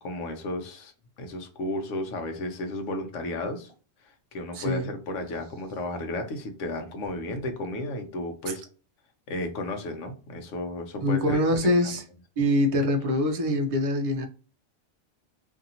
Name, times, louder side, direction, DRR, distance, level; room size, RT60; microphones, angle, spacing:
voice 1, 0.0-3.7 4.0-8.6 9.3-11.9, left 1 dB, 80° left, 1.1 m, -34 dB
voice 2, 4.5-4.9 11.0-12.0 12.4-14.3, left 1 dB, 60° right, 0.3 m, -24 dB
2.8 x 2.6 x 2.7 m
omnidirectional pair, 1.3 m